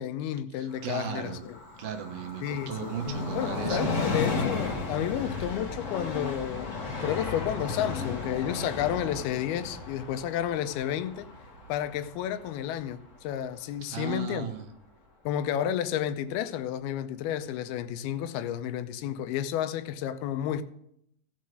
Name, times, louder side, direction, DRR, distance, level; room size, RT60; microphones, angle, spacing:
voice 1, 0.0-1.6 2.4-2.9 3.3-11.3 11.7-14.5 15.3-20.6, left 10 dB, 85° left, 2.6 m, -31 dB
voice 2, 0.6-1.4 1.8-3.9 13.9-14.7, right 7 dB, 75° right, 2.9 m, -36 dB
Train, 0.7-14.0 14.3-14.4, left 4 dB, 35° left, 1.2 m, -35 dB
Bass guitar, 3.1-9.3, left 1 dB, 70° left, 2.6 m, -46 dB
15.5 x 5.6 x 6.3 m
omnidirectional pair, 4.4 m